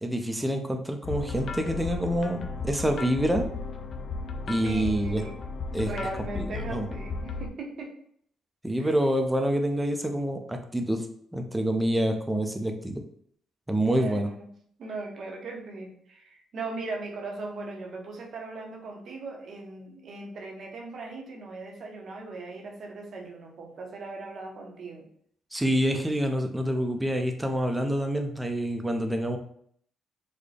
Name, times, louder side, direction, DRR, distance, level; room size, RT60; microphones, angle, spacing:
voice 1, 0.0-3.5 4.5-5.2 5.7-5.9 6.3-6.9 8.6-11.1 11.3-13.0 13.7-14.3 25.5-29.4, equal, 10° right, 5 dB, 0.5 m, -27 dB
sound 1, 1.0-7.5, left 4 dB, 60° left, 0.4 m, -35 dB
voice 2, 4.6-5.4 5.9-8.0 8.8-9.0 13.8-14.5 14.8-25.1 26.9-27.1, right 3 dB, 60° right, 2 dB, 0.8 m, -38 dB
3.9 x 2.2 x 3.3 m, 0.64 s
cardioid pair, 90°, 0 cm